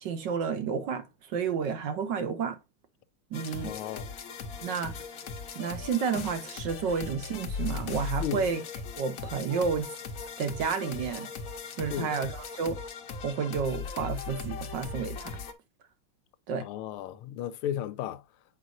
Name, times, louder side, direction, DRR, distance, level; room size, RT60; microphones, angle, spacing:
voice 1, 0.0-2.6 3.3-3.7 4.6-4.9 5.5-8.6 9.0-9.9 10.4-11.3 11.8-12.8 13.2-15.3 16.5-16.7, right 6 dB, 65° right, 1.3 m, -31 dB
sound 1, 3.3-15.5, left 5 dB, 55° left, 1.0 m, -38 dB
voice 2, 3.6-4.1 8.2-8.5 11.9-12.2 16.6-18.4, left 10 dB, 80° left, 1.5 m, -35 dB
8.2 x 5.1 x 2.5 m
omnidirectional pair, 2.4 m